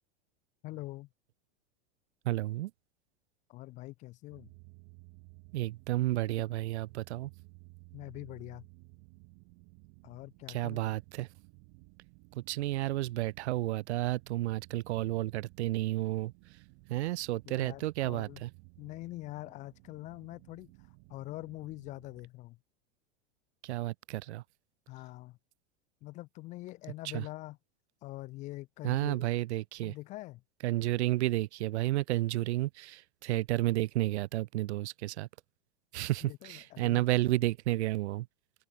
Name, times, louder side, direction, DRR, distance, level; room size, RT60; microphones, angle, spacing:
voice 1, 0.6-1.1 3.5-4.5 7.9-8.7 10.0-10.9 17.5-18.4 18.8-20.7 21.1-22.6 24.9-25.4 26.0-27.6 28.0-29.3 29.8-30.4 36.2-37.0, left 19 dB, 20° left, 0.5 m, -44 dB
voice 2, 2.2-2.7 5.5-7.3 10.5-11.3 12.3-16.3 16.9-18.5 23.6-24.4 27.1-27.2 28.8-29.9 30.6-35.3 35.9-38.3, right 16 dB, 75° right, 1.1 m, -31 dB
sound 1, 4.3-22.3, right 40 dB or more, 45° right, 3.0 m, -57 dB
open air
supercardioid pair, 165°, 34 cm